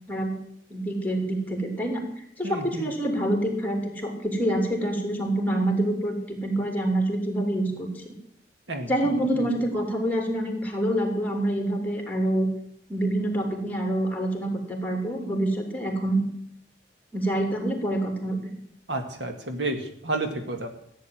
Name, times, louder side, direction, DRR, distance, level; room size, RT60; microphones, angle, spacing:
voice 1, 0.7-2.0 2.4-8.1 8.9-12.5 12.9-16.3 17.1-18.4, right 1 dB, 10° left, 2 dB, 3.0 m, -26 dB
voice 2, 2.4-2.8 8.7-9.2 18.9-20.7, right 2 dB, 90° right, 5 dB, 2.1 m, -31 dB
14.5 x 9.4 x 7.8 m, 0.69 s
head